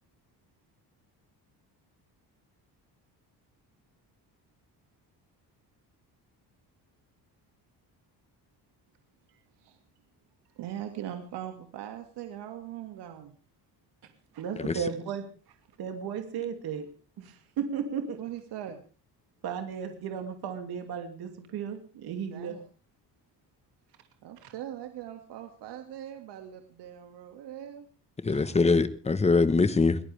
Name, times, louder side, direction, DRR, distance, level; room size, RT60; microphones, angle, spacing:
voice 1, 9.3-9.8 10.5-13.3 18.2-18.8 22.3-22.6 24.2-27.8 28.3-28.6, right 11 dB, 85° right, 5 dB, 2.3 m, -41 dB
voice 2, 14.3-15.3 15.8-16.9 17.2-18.2 19.4-22.5 24.4-24.5, right 7 dB, 65° right, 5 dB, 2.7 m, -34 dB
voice 3, 28.2-30.0, left 4 dB, 15° left, 12 dB, 1.3 m, -23 dB
22.5 x 18.0 x 3.5 m, 0.38 s
cardioid pair, 165°, 40 cm